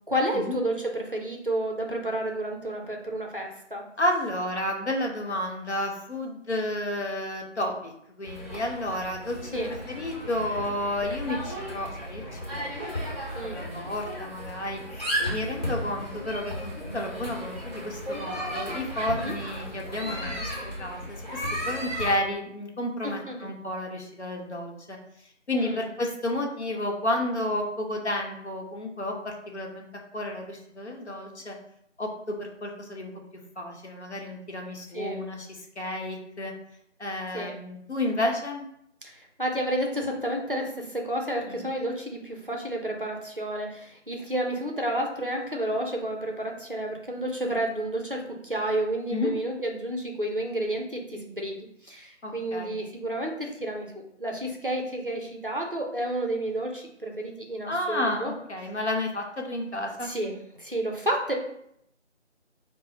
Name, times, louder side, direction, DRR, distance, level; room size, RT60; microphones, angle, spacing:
voice 1, 0.1-3.8 9.5-9.7 13.3-13.7 19.1-19.3 23.0-23.5 25.5-25.8 34.9-35.2 37.3-37.5 39.0-39.1 39.4-53.9 54.2-58.3 60.0-61.3, right 1 dB, 45° right, 1 dB, 0.5 m, -30 dB
voice 2, 4.0-7.9 8.2-14.8 15.3-25.0 25.5-29.9 30.1-31.6 32.0-33.1 33.6-36.5 37.0-38.6 41.5-41.6 49.1-49.3 52.2-52.7 57.7-60.1, left 1 dB, 65° left, 1 dB, 0.8 m, -31 dB
sound 1, 8.2-22.2, equal, 35° left, 1.1 m, -34 dB
4.1 x 2.0 x 4.0 m, 0.74 s
figure-of-eight pair, 170°, 37 cm